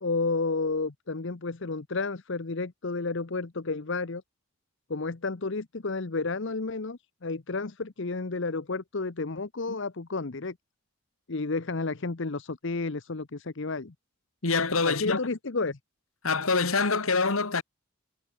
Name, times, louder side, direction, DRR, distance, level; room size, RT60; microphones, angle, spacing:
voice 1, 0.0-4.2 4.9-10.6 11.3-13.9 14.8-15.8, left 3 dB, 55° left, 0.9 m, -31 dB
voice 2, 14.4-15.2 16.2-17.6, left 4 dB, 75° left, 1.9 m, -25 dB
head